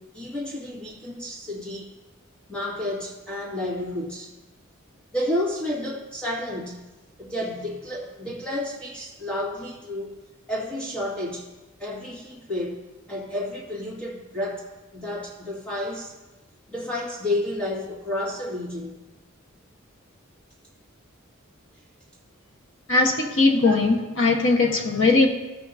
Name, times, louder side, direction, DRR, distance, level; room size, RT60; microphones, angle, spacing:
voice 1, 0.0-1.9 2.5-4.3 5.1-6.9 7.2-10.2 10.5-11.5 11.8-12.8 13.1-14.6 14.9-16.1 16.7-19.0 23.6-23.7, left 1 dB, 5° left, -6 dB, 2.0 m, -31 dB
voice 2, 22.9-25.3, left 3 dB, 65° left, 0 dB, 1.4 m, -19 dB
15.5 x 5.7 x 2.8 m, 1.1 s
head